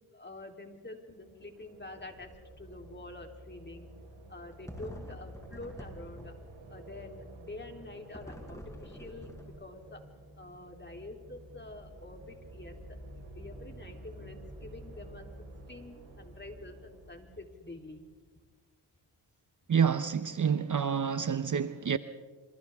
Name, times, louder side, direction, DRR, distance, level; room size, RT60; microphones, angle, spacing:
voice 1, 0.1-3.9 4.3-6.4 6.7-10.0 10.4-13.0 13.4-15.3 15.7-18.0, left 2 dB, 25° left, 3.5 m, -47 dB
sound 1, 1.0-18.0, right 1 dB, 90° right, 4.9 m, -50 dB
sound 2, 2.1-2.4 2.7-2.8 4.7-6.6 8.1-9.9, equal, 5° left, 6.5 m, -47 dB
voice 2, 19.7-22.0, right 7 dB, 40° right, 0.9 m, -28 dB
28.0 x 27.0 x 3.6 m
cardioid pair, 60°, 46 cm